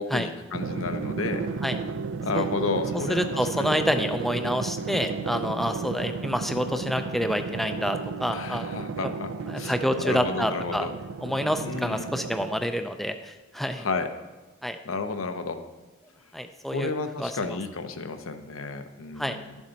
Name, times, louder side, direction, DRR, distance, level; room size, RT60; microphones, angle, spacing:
voice 1, 0.0-1.4 2.2-3.3 3.6-3.8 8.3-9.3 9.6-9.7 10.0-10.9 11.6-12.1 13.8-14.1 14.8-15.6 16.7-19.6, left 3 dB, 75° left, 8 dB, 0.7 m, -31 dB
Drum, 0.5-12.9, right 4 dB, 70° right, 0.4 m, -33 dB
voice 2, 3.1-8.7 9.0-9.1 9.4-10.9 11.2-13.9 14.6-14.8 16.3-16.9 17.2-17.6 19.2-19.4, equal, ahead, 7 dB, 0.4 m, -28 dB
11.0 x 7.2 x 4.0 m, 1.1 s
head